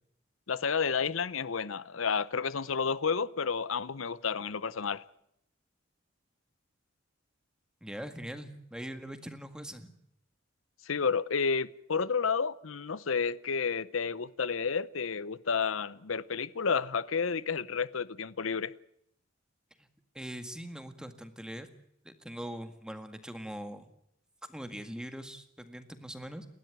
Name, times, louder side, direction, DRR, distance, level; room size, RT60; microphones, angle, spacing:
voice 1, 0.5-5.0 10.9-18.7, left 5 dB, 90° left, 0.8 m, -31 dB
voice 2, 7.8-10.0 19.8-19.9 20.1-21.7 22.0-23.9 24.5-26.5, equal, 5° right, 1.8 m, -42 dB
29.5 x 12.0 x 9.3 m
head